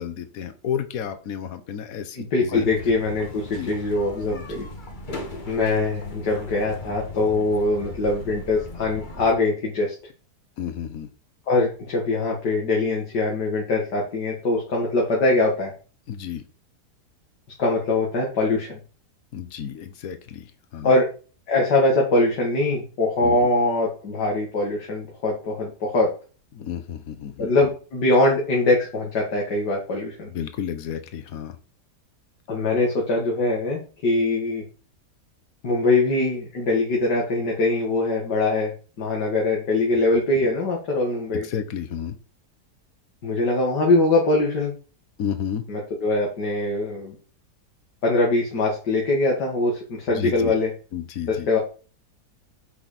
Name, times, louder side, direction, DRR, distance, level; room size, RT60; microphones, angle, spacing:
voice 1, 0.0-2.7 3.5-3.7 4.3-4.7 10.6-11.1 16.1-16.4 19.3-20.9 23.2-23.5 26.5-27.5 30.3-31.6 40.3-40.4 41.3-42.2 45.2-45.6 50.1-50.6 50.9-51.6, left 8 dB, 60° left, 9 dB, 1.4 m, -32 dB
voice 2, 2.1-4.7 5.5-9.9 11.5-15.7 17.6-18.8 20.8-21.1 21.5-26.1 27.4-30.3 32.5-34.6 35.6-38.7 39.0-41.5 43.2-44.7 45.7-47.1 48.0-50.7 51.5-51.6, left 2 dB, 85° left, -2 dB, 2.7 m, -22 dB
sound 1, 2.5-9.3, left 2 dB, 30° left, 1.6 m, -38 dB
8.0 x 6.0 x 4.3 m, 0.36 s
omnidirectional pair, 1.8 m